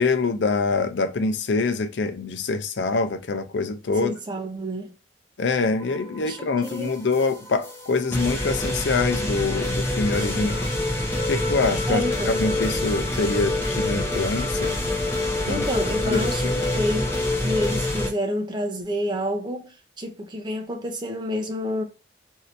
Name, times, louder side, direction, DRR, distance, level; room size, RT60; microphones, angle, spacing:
voice 1, 0.0-4.1 5.4-10.7 11.3-14.7 15.5-15.6 16.1-16.6, left 4 dB, 70° left, 0.5 m, -25 dB
voice 2, 4.0-4.9 6.2-6.9 10.3-10.5 11.9-12.3 15.5-17.1 17.4-21.8, equal, 25° right, 0.6 m, -29 dB
sound 1, 5.6-18.1, left 1 dB, 15° left, 0.7 m, -26 dB
3.2 x 2.7 x 2.6 m
head